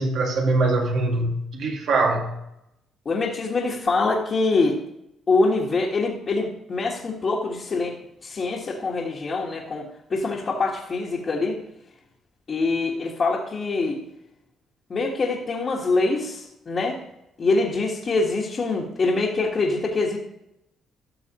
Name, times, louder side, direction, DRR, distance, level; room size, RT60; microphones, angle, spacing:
voice 1, 0.0-2.3, right 2 dB, 70° right, 2 dB, 2.1 m, -23 dB
voice 2, 3.0-4.8 5.3-7.9 8.2-9.8 10.1-11.6 12.5-14.0 14.9-17.0 17.4-20.2, left 3 dB, 45° left, -5 dB, 1.6 m, -24 dB
13.5 x 6.2 x 3.0 m, 0.83 s
cardioid pair, 90°, 0 cm